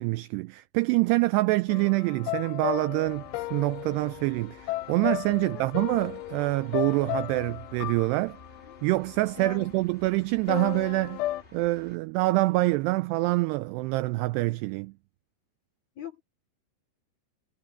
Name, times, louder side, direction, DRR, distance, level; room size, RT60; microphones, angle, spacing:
voice 1, 0.0-8.4 8.8-11.2 11.5-14.9, right 21 dB, 90° right, 2.3 m, -26 dB
sound 1, 1.7-9.7 10.5-11.4, left 16 dB, 90° left, 3.1 m, -35 dB
sound 2, 3.0-12.0, left 2 dB, 60° left, 0.6 m, -52 dB
voice 2, 9.4-9.7 16.0-16.2, left 4 dB, 40° left, 3.5 m, -40 dB
omnidirectional pair, 5.3 m